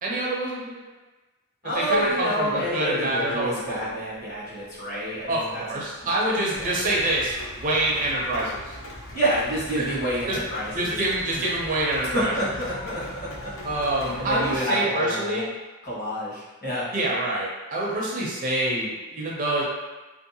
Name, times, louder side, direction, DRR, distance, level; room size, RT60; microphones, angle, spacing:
voice 1, 0.0-0.8 1.7-3.9 5.3-8.7 9.8-9.9 10.3-10.4 10.7-12.3 13.6-15.5 16.9-19.6, right 1 dB, 40° right, -4 dB, 0.5 m, -26 dB
voice 2, 1.6-5.6 6.0-6.2 6.6-7.0 9.1-11.0 11.3-13.5 14.0-15.4 15.8-16.9, equal, 45° left, -9 dB, 1.1 m, -29 dB
Piano, 1.9-7.2 8.1-8.2 8.7-8.8 9.6-9.7 10.7-10.8, left 1 dB, 85° left, 1.1 m, -37 dB
Rain, 6.6-14.6, left 1 dB, 65° left, 0.4 m, -40 dB
2.6 x 2.1 x 2.7 m, 1.2 s
head